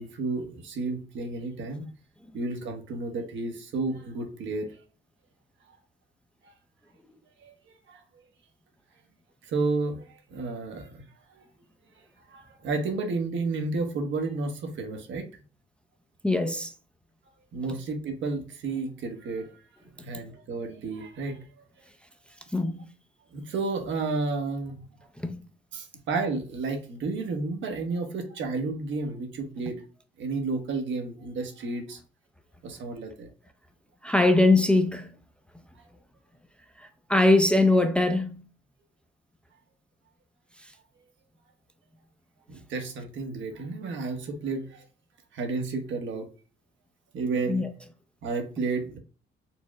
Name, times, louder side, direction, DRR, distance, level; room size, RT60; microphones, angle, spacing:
voice 1, 0.0-1.9 2.3-4.8 6.4-6.5 7.4-8.0 9.5-11.0 11.3-11.4 12.3-15.3 17.5-19.5 20.0-21.7 23.3-24.8 25.7-29.8 30.2-32.0 32.6-33.3 35.8-35.9 42.5-44.8 45.3-46.3 47.1-47.7 48.2-49.0, right 3 dB, 70° right, 1.0 m, -32 dB
voice 2, 16.2-16.7 22.5-22.8 25.2-25.4 34.0-35.1 36.8-38.4 47.5-47.7, left 2 dB, 5° left, 0.4 m, -22 dB
4.4 x 2.0 x 3.5 m
cardioid pair, 90°, 20 cm